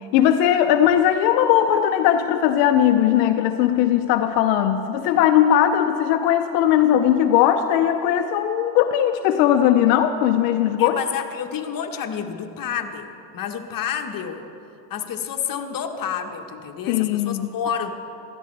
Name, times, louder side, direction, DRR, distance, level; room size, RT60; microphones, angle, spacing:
voice 1, 0.1-11.0 16.9-17.5, left 10 dB, 80° left, 7 dB, 0.7 m, -19 dB
voice 2, 10.8-14.5 14.9-17.9, left 8 dB, 45° left, 5 dB, 1.2 m, -29 dB
16.0 x 12.5 x 3.3 m, 2.7 s
supercardioid pair, 80°, 49 cm